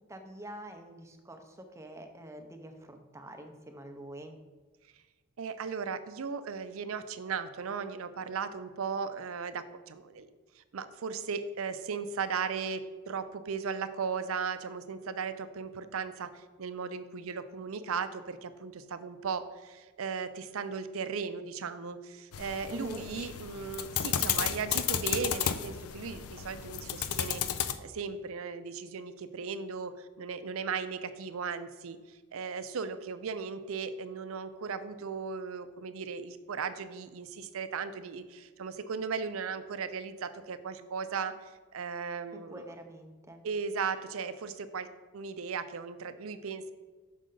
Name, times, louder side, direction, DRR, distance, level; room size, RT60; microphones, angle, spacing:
voice 1, 0.0-4.4 22.7-23.1 42.5-43.4, right 1 dB, 15° right, 5 dB, 0.6 m, -45 dB
voice 2, 5.4-10.3 10.6-27.4 27.8-42.6 43.4-44.9 45.1-46.7, right 5 dB, 70° right, 12 dB, 0.5 m, -37 dB
sound 1, 22.3-27.7, left 10 dB, 85° left, 0.4 m, -33 dB
6.3 x 5.4 x 3.8 m, 1.4 s
head